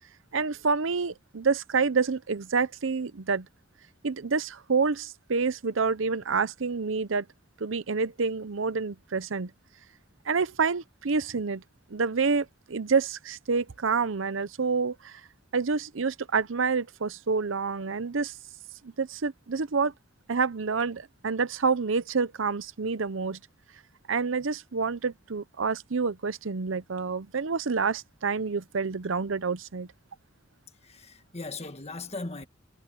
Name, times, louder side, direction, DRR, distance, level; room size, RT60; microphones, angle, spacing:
voice 1, 0.3-3.5 4.0-7.3 7.6-9.5 10.3-11.6 11.9-15.2 15.5-18.3 19.0-19.9 20.3-23.4 24.1-29.9, right 5 dB, 75° right, 0.7 m, -28 dB
voice 2, 30.8-32.5, left 3 dB, 35° left, 1.6 m, -38 dB
head